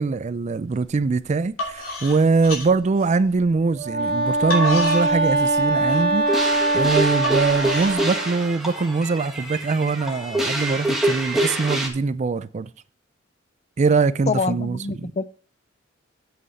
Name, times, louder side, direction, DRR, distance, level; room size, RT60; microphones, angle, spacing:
voice 1, 0.0-6.3 6.7-12.7 13.8-15.1, right 4 dB, 35° right, 0.4 m, -22 dB
sound 1, 0.8-1.0 1.4-3.5 4.1-7.9, left 1 dB, 80° left, 3.0 m, -31 dB
Wind instrument woodwind instrument, 3.7-8.4, right 2 dB, 55° right, 1.9 m, -22 dB
sound 2, 6.3-11.9, right 1 dB, ahead, 1.6 m, -26 dB
voice 2, 14.3-15.2, left 4 dB, 35° left, 0.4 m, -25 dB
8.4 x 7.8 x 4.0 m
head